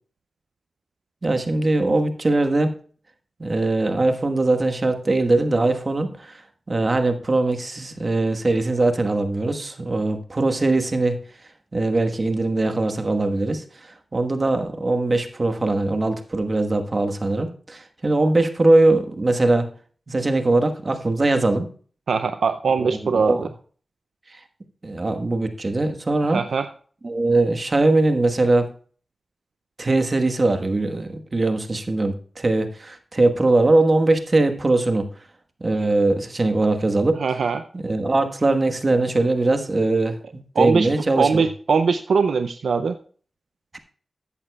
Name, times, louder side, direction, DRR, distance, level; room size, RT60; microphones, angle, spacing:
voice 1, 1.2-2.7 3.4-6.4 6.7-11.2 11.7-19.7 20.1-21.7 22.8-23.5 24.3-24.4 24.8-26.4 27.0-28.7 29.8-35.1 35.6-37.2 37.7-41.4, right 2 dB, 45° right, 6 dB, 1.3 m, -21 dB
voice 2, 22.1-23.5 26.2-26.7 37.2-37.6 40.6-40.9 41.2-43.0, right 5 dB, 85° right, 9 dB, 0.4 m, -21 dB
13.0 x 8.8 x 2.3 m, 0.43 s
cardioid pair, 45°, 0 cm